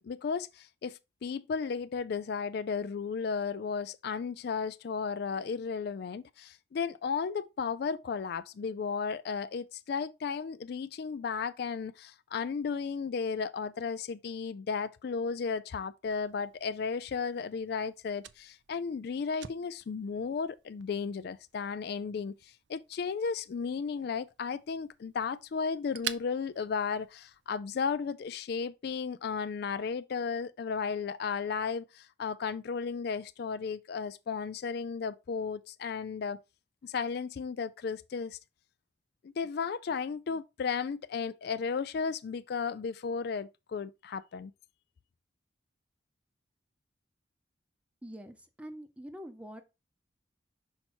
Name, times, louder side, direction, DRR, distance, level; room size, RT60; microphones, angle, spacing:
voice 1, 0.0-36.4 36.8-38.4 39.2-44.5, left 5 dB, 55° left, 0.3 m, -34 dB
Fire, 16.0-27.6, right 10 dB, 65° right, 0.4 m, -48 dB
voice 2, 48.0-49.6, equal, 5° right, 0.7 m, -45 dB
5.7 x 4.4 x 4.3 m
head